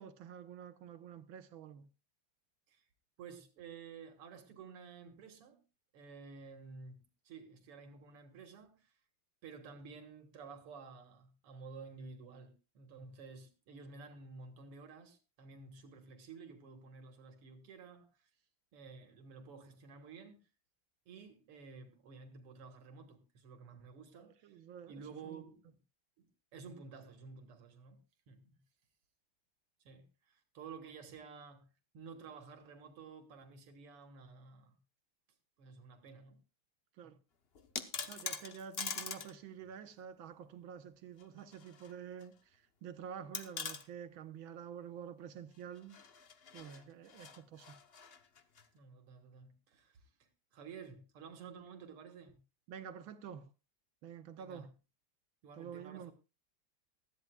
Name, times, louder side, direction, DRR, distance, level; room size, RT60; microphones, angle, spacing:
voice 1, 0.0-1.9 24.1-25.4 37.0-37.2 38.1-46.0 46.5-47.8 52.7-53.5 54.0-54.7 55.6-56.1, right 8 dB, 70° right, 1.7 m, -49 dB
voice 2, 3.2-5.6 5.9-7.0 7.2-9.0 9.4-18.3 18.7-20.4 21.1-25.8 26.2-28.0 28.3-28.6 29.8-34.8 35.6-36.4 37.0-37.1 48.7-52.4 54.4-54.7 55.4-56.1, right 5 dB, 90° right, 2.5 m, -52 dB
sound 1, 37.5-39.3 39.6-39.7 41.2-41.9 42.2-42.3 43.3-43.8 45.8-48.7, left 5 dB, 45° left, 0.7 m, -43 dB
19.0 x 13.5 x 2.3 m
omnidirectional pair, 2.4 m